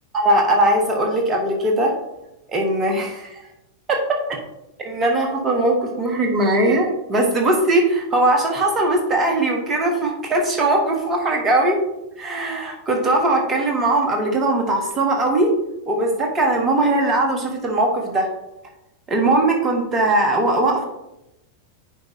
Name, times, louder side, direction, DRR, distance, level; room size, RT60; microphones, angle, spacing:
voice 1, 0.1-1.9 2.5-3.4 4.8-11.8 12.2-15.5 15.9-18.3 19.1-20.8, right 1 dB, 25° right, 1 dB, 1.5 m, -20 dB
9.7 x 5.2 x 3.1 m, 0.89 s
figure-of-eight pair, 90°, 0 cm